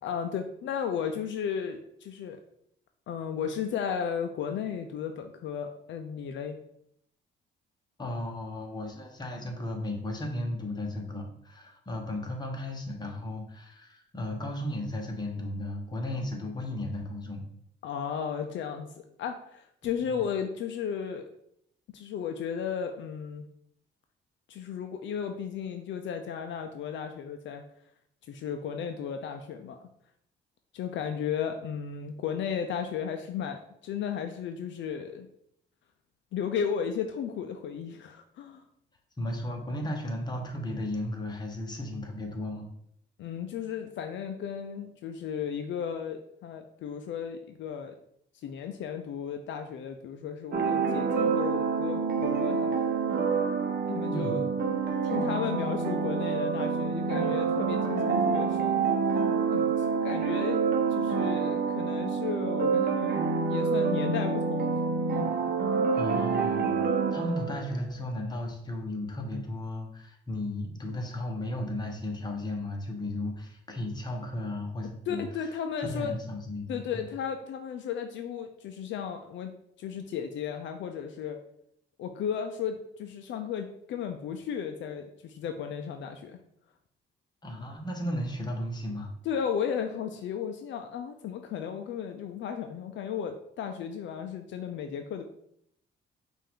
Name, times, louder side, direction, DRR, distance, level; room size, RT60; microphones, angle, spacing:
voice 1, 0.0-2.4 3.1-6.6 17.8-21.3 21.9-23.5 24.5-27.6 28.3-29.8 30.7-35.3 36.3-38.6 43.2-48.0 48.4-52.8 53.9-58.8 59.5-60.6 60.9-64.8 75.1-76.2 76.7-81.4 82.0-86.4 89.2-95.2, left 7 dB, 70° left, 6 dB, 0.5 m, -34 dB
voice 2, 8.0-17.4 39.2-42.7 54.1-54.4 65.9-66.8 67.1-75.2 75.8-77.0 87.4-89.1, left 1 dB, 20° left, 1 dB, 1.1 m, -35 dB
sound 1, 50.5-67.8, right 5 dB, 50° right, 0.8 m, -27 dB
5.4 x 2.6 x 3.6 m, 0.71 s
cardioid pair, 90°, 20 cm